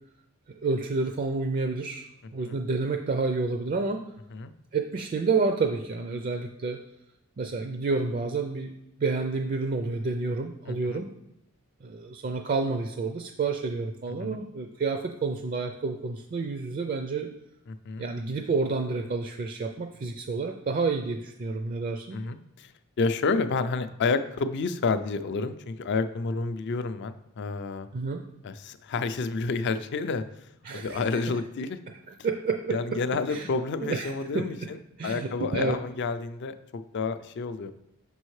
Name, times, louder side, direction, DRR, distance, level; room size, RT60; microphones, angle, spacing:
voice 1, 0.6-4.0 4.7-6.8 7.4-11.1 11.8-17.3 18.0-22.2 27.9-28.2 30.6-31.2 31.9-32.0 32.2-32.8 33.3-33.5 33.8-34.7 35.0-35.8, right 4 dB, 40° right, 4 dB, 0.4 m, -29 dB
voice 2, 10.7-11.0 14.2-14.4 17.7-18.1 22.1-22.7 23.0-27.9 28.4-30.2 30.7-31.8 32.7-34.8 35.0-37.7, left 4 dB, 55° left, 11 dB, 0.4 m, -30 dB
6.2 x 5.3 x 3.2 m, 0.86 s
head